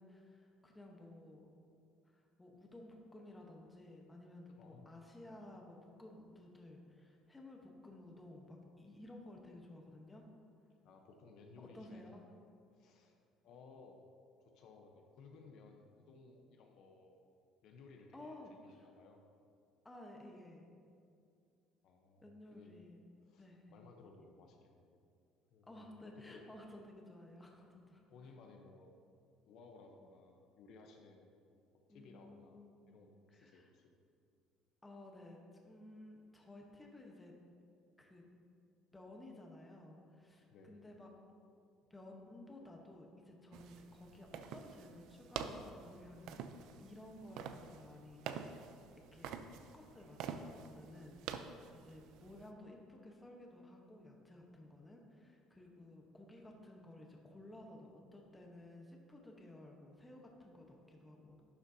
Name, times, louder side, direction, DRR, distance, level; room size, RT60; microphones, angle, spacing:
voice 1, 0.0-1.4 2.0-10.3 11.7-12.2 18.1-18.9 19.8-20.7 22.2-23.0 23.4-23.9 25.7-28.0 30.0-30.1 31.9-33.7 34.8-37.3 38.0-38.2 38.9-41.1 41.9-48.6 48.9-61.4, left 1 dB, 10° left, 0 dB, 1.0 m, -55 dB
voice 2, 4.5-4.9 10.8-12.2 12.7-14.0 14.4-17.2 17.6-19.2 21.8-22.7 23.2-25.0 25.5-26.5 28.1-29.0 29.4-31.3 31.7-33.9 40.5-40.8, left 4 dB, 60° left, 3 dB, 0.8 m, -59 dB
sound 1, 43.5-52.5, right 7 dB, 70° right, 0.4 m, -48 dB
11.5 x 7.0 x 2.8 m, 2.4 s
cardioid pair, 135°, 0 cm